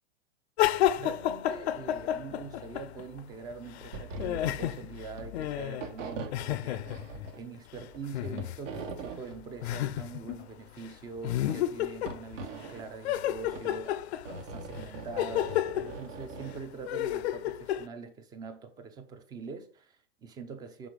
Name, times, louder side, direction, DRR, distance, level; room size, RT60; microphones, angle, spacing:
sound 1, 0.6-3.2 3.5-7.3 8.1-8.6 9.0-9.1 9.6-10.5 10.8-10.9 11.2-12.7 13.0-17.9, left 12 dB, 60° left, 0.5 m, -31 dB
voice 1, 1.0-20.9, right 5 dB, 10° right, 0.4 m, -44 dB
sound 2, 3.9-4.8 5.0-5.5 5.8-7.5 7.8-9.4 11.1-11.6 12.1-12.9 13.5-16.6, right 3 dB, 85° right, 1.4 m, -41 dB
6.2 x 3.8 x 5.1 m
hypercardioid pair, 140°, 37 cm